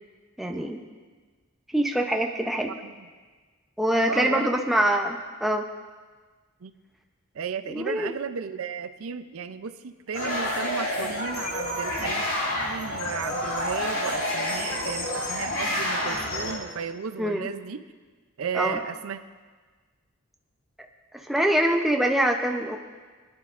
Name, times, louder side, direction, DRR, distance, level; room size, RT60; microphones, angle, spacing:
voice 1, 0.4-0.8 1.7-2.8 3.8-5.7 7.7-8.1 17.2-17.5 18.5-18.8 21.1-22.8, right 1 dB, ahead, 2 dB, 0.6 m, -24 dB
voice 2, 4.1-4.5 6.6-6.7 7.3-12.3 12.6-17.8 18.4-19.2, right 6 dB, 75° right, 11 dB, 0.5 m, -34 dB
sound 1, 10.1-16.5, left 1 dB, 65° left, 2.5 m, -29 dB
21.0 x 10.5 x 2.5 m, 1.4 s
head